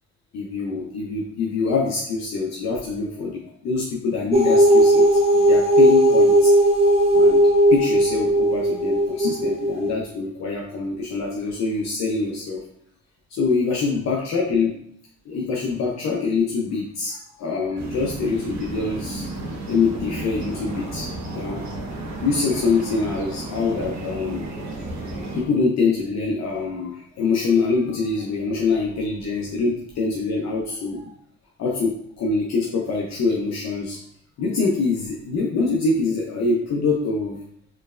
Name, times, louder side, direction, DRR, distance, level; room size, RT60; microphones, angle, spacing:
voice 1, 0.3-6.5 7.1-7.4 7.7-12.6 13.3-14.7 15.3-19.3 19.7-21.9 22.2-24.7 25.0-31.1 31.6-34.0 34.4-37.4, left 4 dB, 60° left, -2 dB, 0.7 m, -25 dB
sound 1, 4.3-9.9, right 1 dB, 20° right, 0.9 m, -16 dB
sound 2, 17.8-25.4, right 2 dB, 65° right, 0.9 m, -33 dB
4.5 x 3.2 x 2.4 m, 0.67 s
cardioid pair, 90°, 30 cm